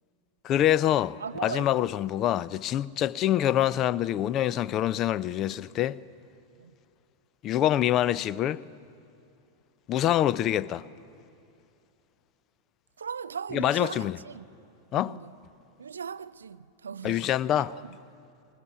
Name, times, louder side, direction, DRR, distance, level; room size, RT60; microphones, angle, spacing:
voice 1, 0.4-6.0 7.4-8.6 9.9-10.9 13.5-14.2 14.9-15.2 17.0-17.7, left 12 dB, 35° left, 0.4 m, -25 dB
voice 2, 1.2-1.9 6.6-6.7 13.0-14.5 14.9-15.3 15.8-17.2 17.6-18.0, right 6 dB, 70° right, 0.4 m, -38 dB
20.0 x 18.5 x 7.2 m
figure-of-eight pair, 90°, 0 cm